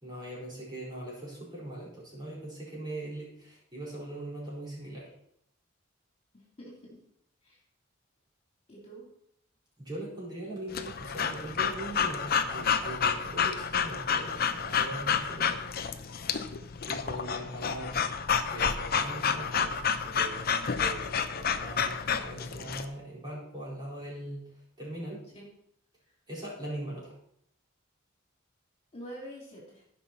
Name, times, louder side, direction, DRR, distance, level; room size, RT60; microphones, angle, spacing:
voice 1, 0.0-5.1 9.8-15.6 16.9-18.1 18.3-20.5 20.7-24.5 24.8-25.2 26.3-27.1, right 1 dB, 20° right, -7 dB, 4.6 m, -41 dB
voice 2, 6.6-7.0 7.4-7.6 8.7-9.1 16.2-16.5 20.6-20.9 25.3-25.5 28.9-29.8, equal, 30° left, -4 dB, 3.2 m, -46 dB
Breathing / Dog, 10.7-22.9, left 6 dB, 50° left, 0.7 m, -30 dB
15.5 x 5.7 x 4.3 m, 0.72 s
head